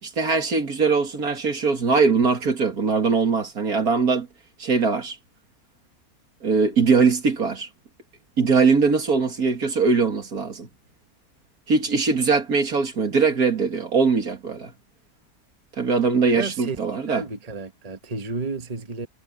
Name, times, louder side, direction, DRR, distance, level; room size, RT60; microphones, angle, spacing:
voice 1, 0.0-4.3 4.6-5.2 6.4-7.7 8.4-10.7 11.7-14.7 15.8-17.2, right 4 dB, 75° right, 2.7 m, -21 dB
voice 2, 16.3-16.8 17.1-19.1, right 3 dB, 25° right, 1.4 m, -31 dB
omnidirectional pair, 1.6 m